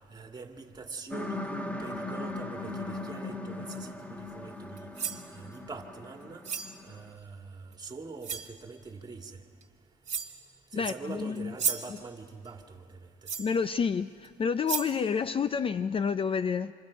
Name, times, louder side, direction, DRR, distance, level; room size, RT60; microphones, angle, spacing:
voice 1, 0.1-3.9 4.3-4.9 5.4-6.4 6.9-7.4 7.8-9.3 10.7-12.8, right 4 dB, 25° right, 2.2 m, -43 dB
sound 1, 1.1-7.1, left 2 dB, 10° left, 1.3 m, -39 dB
sound 2, 4.8-5.3 6.4-6.8 7.7-7.8 8.2-8.5 9.6-9.7 10.1-10.5 11.4-12.0 13.3-13.6 14.2-14.3 14.7-15.0, right 6 dB, 40° right, 1.9 m, -33 dB
voice 2, 10.7-11.5 13.4-16.7, left 6 dB, 30° left, 0.5 m, -29 dB
29.0 x 27.0 x 5.2 m
cardioid pair, 110°, 17 cm